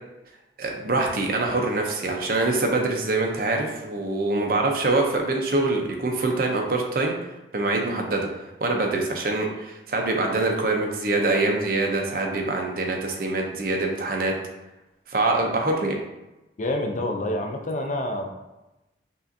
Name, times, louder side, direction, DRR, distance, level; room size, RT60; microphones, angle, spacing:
voice 1, 0.6-7.1 7.5-8.3 8.6-14.3 15.1-16.0, right 2 dB, 50° right, 1 dB, 0.6 m, -24 dB
voice 2, 16.6-18.3, left 1 dB, 40° left, 3 dB, 0.4 m, -27 dB
5.4 x 2.5 x 2.6 m, 1.0 s
head